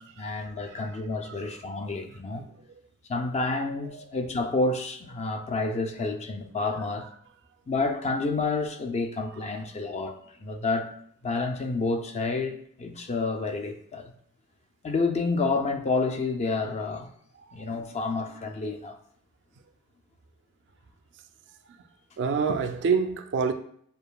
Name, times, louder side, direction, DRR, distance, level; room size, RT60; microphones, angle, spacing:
voice 1, 0.0-2.4 3.1-7.1 7.7-10.1 10.4-10.9 11.2-14.1 14.8-17.1 17.5-19.0, left 3 dB, 30° left, 0.3 m, -29 dB
voice 2, 22.2-23.5, right 5 dB, 55° right, 0.3 m, -26 dB
6.8 x 2.4 x 2.3 m
head